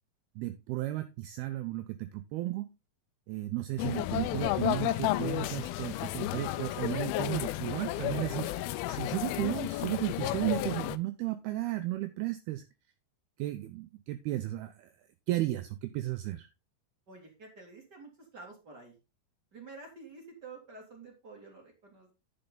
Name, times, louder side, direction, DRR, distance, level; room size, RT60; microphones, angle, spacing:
voice 1, 0.4-2.7 3.3-8.5 8.9-12.6 13.4-14.9 15.3-16.5, right 16 dB, 80° right, 10 dB, 2.3 m, -34 dB
sound 1, 3.8-11.0, left 15 dB, 85° left, 2.2 m, -32 dB
voice 2, 17.1-18.9 19.5-22.1, right 3 dB, 30° right, 1 dB, 2.4 m, -49 dB
10.5 x 6.9 x 3.8 m, 0.27 s
omnidirectional pair, 5.0 m